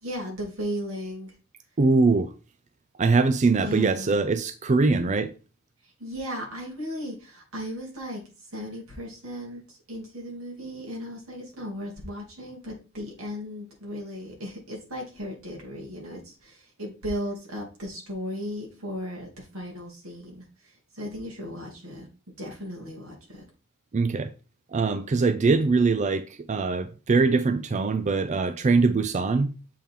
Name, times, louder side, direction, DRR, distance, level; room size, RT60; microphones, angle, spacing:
voice 1, 0.0-1.3 3.6-4.2 6.0-8.2 8.5-20.4 20.9-22.1 22.4-23.4, equal, 90° right, 2.9 m, -36 dB
voice 2, 1.8-2.3 3.0-5.3 23.9-24.3 24.7-29.5, right 4 dB, 35° right, 0.4 m, -22 dB
7.4 x 4.3 x 3.6 m
head